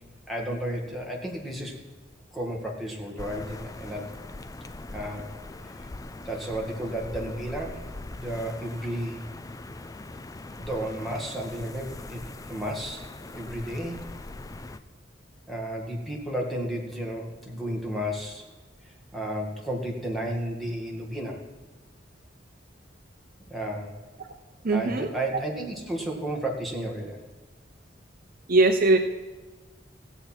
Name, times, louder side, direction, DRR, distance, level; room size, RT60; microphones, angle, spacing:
voice 1, 0.3-1.8 2.3-4.2 4.9-5.3 6.3-7.9 8.1-9.3 10.6-12.2 12.5-14.0 15.5-18.4 18.8-21.4 23.5-24.0 24.7-27.2, right 1 dB, ahead, -2 dB, 2.0 m, -33 dB
sound 1, 3.2-14.8, left 2 dB, 20° left, 0.4 m, -41 dB
voice 2, 24.6-25.1 28.5-29.0, right 2 dB, 50° right, 6 dB, 0.7 m, -20 dB
16.5 x 8.0 x 4.4 m, 1.3 s
head